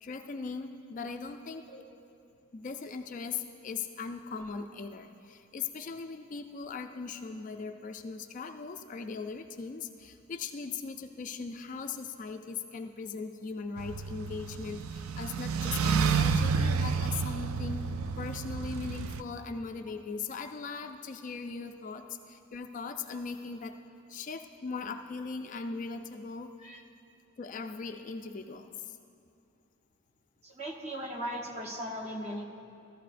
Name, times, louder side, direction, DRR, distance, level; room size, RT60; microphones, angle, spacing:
voice 1, 0.0-1.7 2.5-17.8 18.2-23.8 24.1-26.5 27.4-29.0, left 4 dB, 35° left, 6 dB, 0.3 m, -39 dB
sound 1, 13.8-19.2, right 5 dB, 80° right, 0.4 m, -30 dB
voice 2, 30.4-32.4, equal, 30° right, 0 dB, 1.1 m, -38 dB
14.5 x 14.0 x 2.5 m, 2.6 s
head